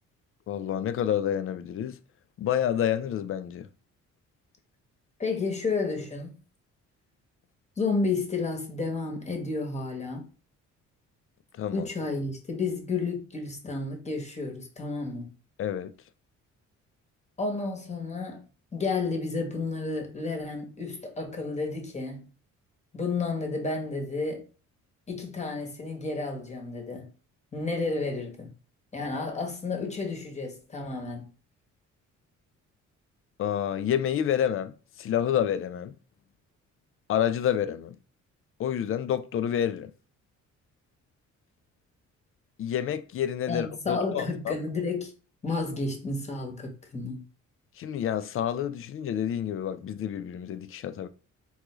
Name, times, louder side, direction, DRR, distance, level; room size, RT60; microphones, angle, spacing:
voice 1, 0.5-2.0 2.4-3.7 11.5-11.9 15.6-15.9 33.4-35.9 37.1-38.0 38.6-39.9 42.6-44.6 47.8-51.1, left 9 dB, 45° left, 0.4 m, -29 dB
voice 2, 5.2-6.4 7.8-10.3 11.7-15.3 17.4-18.4 18.7-22.3 22.9-24.4 25.1-27.1 27.5-28.5 28.9-31.3 43.5-45.1 45.4-47.2, left 3 dB, 20° left, 1.1 m, -31 dB
3.7 x 2.3 x 3.0 m
cardioid pair, 90°, 30 cm